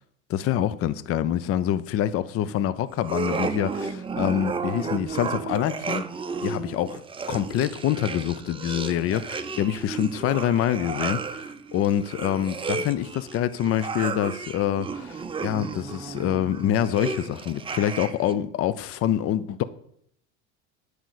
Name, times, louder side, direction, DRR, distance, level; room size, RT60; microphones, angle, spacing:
voice 1, 0.3-6.1 6.4-7.0 7.3-19.6, left 11 dB, 40° left, 0.6 m, -26 dB
sound 1, 3.0-18.4, right 5 dB, 15° right, 0.6 m, -33 dB
9.0 x 5.0 x 6.5 m
hypercardioid pair, 90°, 36 cm